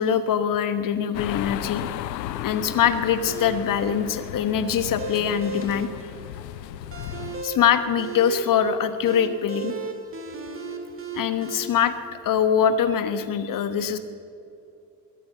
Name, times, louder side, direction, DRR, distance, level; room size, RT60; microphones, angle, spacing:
voice 1, 0.0-1.8 2.4-5.9 7.4-9.7 11.1-11.9 12.2-14.0, left 8 dB, 40° left, 10 dB, 1.3 m, -23 dB
sound 1, 1.1-7.4, left 13 dB, 80° left, 0.6 m, -35 dB
sound 2, 3.3-11.6, right 3 dB, 25° right, 2.3 m, -37 dB
21.5 x 8.3 x 7.1 m, 2.6 s
figure-of-eight pair, 60°, 50 cm